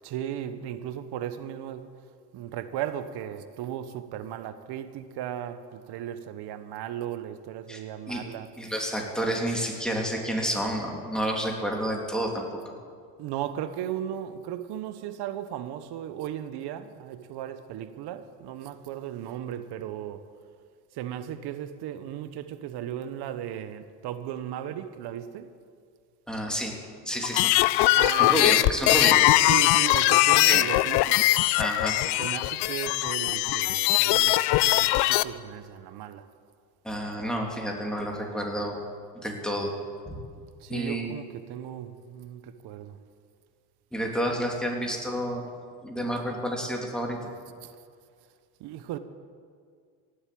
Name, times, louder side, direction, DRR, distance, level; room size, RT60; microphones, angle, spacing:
voice 1, 0.0-2.0 2.3-8.6 13.2-20.3 20.9-25.6 27.9-28.8 29.3-31.3 32.2-36.3 40.6-43.0 47.6-47.8 48.6-49.0, right 10 dB, 65° right, 1.1 m, -36 dB
voice 2, 8.6-12.4 26.3-26.8 27.0-27.5 28.2-29.2 30.4-30.6 31.6-32.0 36.8-38.8 39.1-39.7 40.1-40.2 40.7-41.1 43.9-45.4 45.8-47.2, equal, ahead, 3.0 m, -29 dB
sound 1, 27.2-35.2, left 18 dB, 70° left, 0.6 m, -21 dB
17.0 x 8.2 x 8.6 m
supercardioid pair, 100°, 42 cm